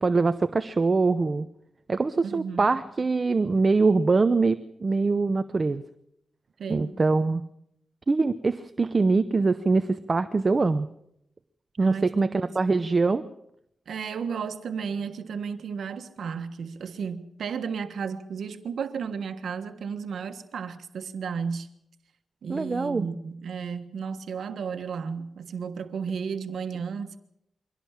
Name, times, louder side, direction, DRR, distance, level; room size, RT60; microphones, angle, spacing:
voice 1, 0.0-1.5 1.9-5.8 6.7-7.4 8.1-10.9 11.8-13.2 22.5-23.1, right 3 dB, 35° right, 0.8 m, -23 dB
voice 2, 2.2-2.7 6.6-7.0 11.8-12.1 12.3-12.4 13.9-21.7 22.4-27.2, right 6 dB, 75° right, 1.4 m, -33 dB
23.5 x 17.5 x 7.4 m
wide cardioid pair, 125°, 0 cm